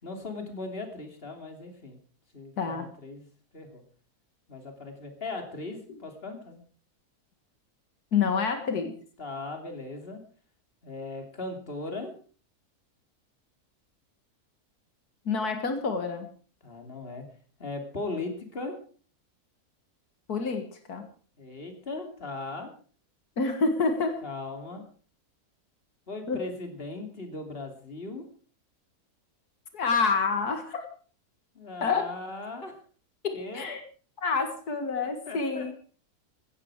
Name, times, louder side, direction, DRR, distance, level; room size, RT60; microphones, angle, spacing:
voice 1, 0.0-2.0 2.3-3.2 3.5-3.8 4.5-6.6 9.2-10.2 10.8-12.1 16.6-17.2 17.6-18.8 21.4-22.7 24.2-24.8 26.1-28.2 31.5-32.8 33.3-33.7 35.0-35.8, left 3 dB, 35° left, 5 dB, 3.1 m, -38 dB
voice 2, 2.6-2.9 8.1-9.0 15.3-16.3 20.3-21.1 23.4-24.2 26.3-26.4 29.7-30.9 31.8-32.1 33.2-33.8 34.2-35.7, left 4 dB, 85° left, 7 dB, 2.4 m, -28 dB
16.5 x 14.0 x 4.8 m, 0.42 s
omnidirectional pair, 1.6 m